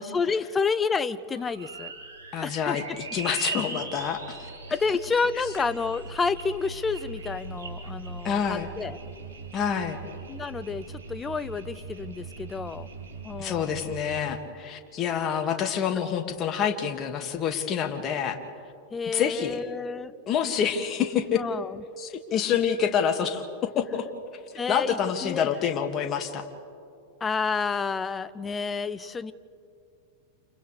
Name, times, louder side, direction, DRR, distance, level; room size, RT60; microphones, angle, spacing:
voice 1, 0.0-1.9 2.4-3.0 4.7-9.0 10.3-12.9 13.2-14.0 18.9-20.1 21.4-21.8 24.6-25.5 27.2-29.3, left 5 dB, 20° left, 15 dB, 0.7 m, -30 dB
sound 1, 1.3-14.2, right 4 dB, 75° right, 4.0 m, -39 dB
voice 2, 2.3-4.5 8.2-8.7 9.5-10.0 13.4-18.4 19.1-19.6 20.3-21.4 22.0-24.1 24.7-26.5, left 8 dB, 35° left, 5 dB, 2.1 m, -27 dB
29.5 x 29.0 x 3.4 m, 2.4 s
figure-of-eight pair, 95°, 0 cm